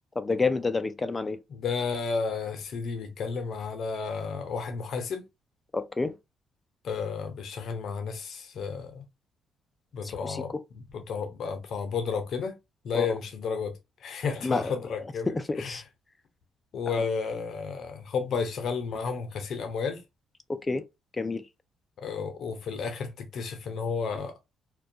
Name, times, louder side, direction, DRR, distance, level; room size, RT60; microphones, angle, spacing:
voice 1, 0.2-1.4 5.7-6.1 10.0-10.6 12.9-13.2 14.4-15.8 16.9-17.1 20.5-20.8 21.2-21.4, left 3 dB, 25° left, 0.3 m, -29 dB
voice 2, 1.5-5.2 6.8-9.0 9.9-12.5 12.8-13.7 14.0-15.3 15.6-15.8 16.7-20.0 22.0-24.3, left 5 dB, 65° left, 0.6 m, -32 dB
2.2 x 2.2 x 2.6 m
cardioid pair, 90°, 0 cm